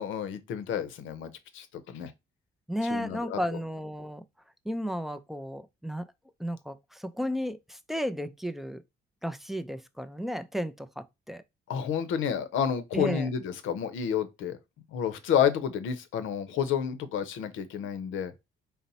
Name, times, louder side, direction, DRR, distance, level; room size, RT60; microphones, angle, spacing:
voice 1, 0.0-2.1 2.9-3.4 11.7-14.6 14.9-18.3, left 8 dB, 80° left, 0.6 m, -30 dB
voice 2, 2.7-4.2 4.7-6.1 6.4-8.8 9.2-11.4 12.9-13.3, equal, ahead, 0.3 m, -33 dB
4.0 x 2.0 x 4.0 m
cardioid pair, 90°, 20 cm